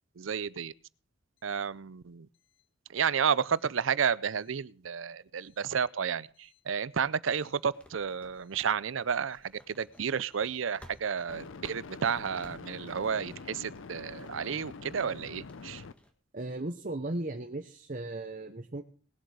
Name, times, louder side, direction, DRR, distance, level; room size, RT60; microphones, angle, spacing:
voice 1, 0.2-0.7 1.4-2.3 2.9-15.8, right 7 dB, 80° right, 19 dB, 0.5 m, -31 dB
sound 1, 6.4-6.6 11.3-15.9, left 4 dB, 80° left, 0.6 m, -45 dB
sound 2, 7.3-16.1, equal, 5° left, 1.6 m, -58 dB
voice 2, 16.3-18.8, right 2 dB, 45° right, 6 dB, 0.9 m, -36 dB
19.5 x 7.8 x 4.8 m, 0.40 s
head